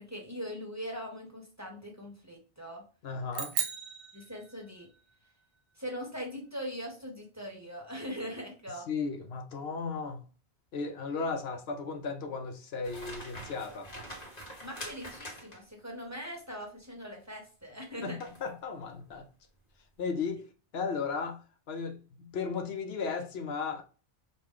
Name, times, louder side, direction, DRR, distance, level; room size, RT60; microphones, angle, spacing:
voice 1, 0.0-2.8 4.1-4.9 5.7-8.9 14.6-18.2, equal, 15° right, 0.9 m, -41 dB
voice 2, 3.0-3.5 8.9-10.2 10.7-13.9 18.0-19.3 20.0-20.5 20.7-21.4 21.7-23.8, left 5 dB, 70° left, 0.9 m, -35 dB
sound 1, 3.3-5.0, right 8 dB, 65° right, 0.9 m, -36 dB
sound 2, 12.8-15.8 18.2-18.5 19.0-19.2, equal, 40° left, 1.3 m, -45 dB
4.9 x 2.5 x 3.5 m
omnidirectional pair, 1.1 m